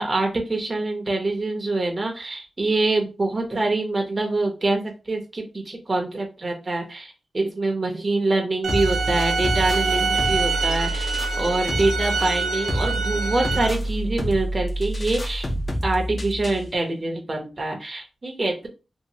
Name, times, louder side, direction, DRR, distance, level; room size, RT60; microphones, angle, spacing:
voice 1, 0.0-11.1 11.4-15.5 15.8-18.7, right 2 dB, 35° right, 1 dB, 0.7 m, -25 dB
sound 1, 8.6-13.7, right 4 dB, 85° right, 0.5 m, -26 dB
sound 2, 8.7-16.7, right 1 dB, 35° left, 0.6 m, -28 dB
2.8 x 2.4 x 2.7 m, 0.30 s
wide cardioid pair, 80°, 0 cm